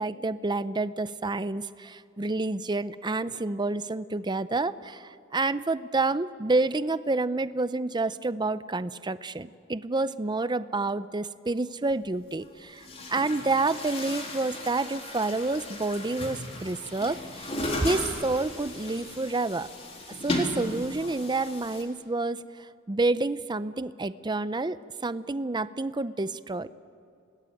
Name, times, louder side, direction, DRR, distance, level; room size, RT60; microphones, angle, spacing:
voice 1, 0.0-17.5 17.8-19.7 20.2-26.7, right 3 dB, 20° right, 14 dB, 0.6 m, -29 dB
Chatter / Gurgling / Tap, 11.9-12.0 12.7-21.8, left 1 dB, 30° left, 3.9 m, -35 dB
29.0 x 20.0 x 9.2 m, 2.3 s
head